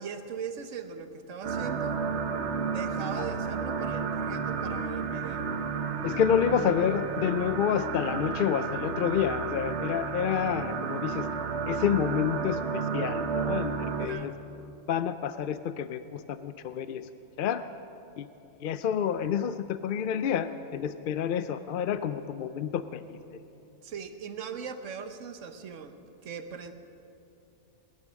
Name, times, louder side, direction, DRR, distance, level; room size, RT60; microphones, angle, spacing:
voice 1, 0.0-2.0 2.6-5.5 14.0-14.4 23.8-25.9 26.2-26.7, right 6 dB, 85° right, 8 dB, 1.3 m, -39 dB
sound 1, 1.4-14.1, right 5 dB, 65° right, 1.1 m, -32 dB
voice 2, 6.0-11.3 11.7-14.3 14.9-17.1 17.4-17.6 18.2-18.3 18.6-23.4, left 8 dB, 60° left, 11 dB, 0.6 m, -29 dB
20.0 x 11.5 x 6.3 m, 2.8 s
omnidirectional pair, 1.3 m